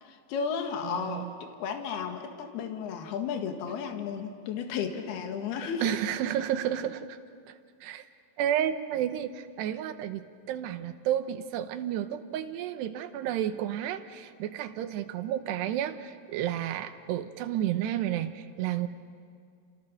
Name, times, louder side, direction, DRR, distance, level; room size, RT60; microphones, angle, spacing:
voice 1, 0.0-6.0, left 6 dB, 70° left, 4 dB, 3.7 m, -34 dB
voice 2, 0.8-1.3 5.8-7.2 7.5-7.6 7.8-8.0 8.4-18.9, right 11 dB, 85° right, 9 dB, 3.1 m, -31 dB
29.5 x 28.5 x 6.7 m, 2.2 s
omnidirectional pair, 4.9 m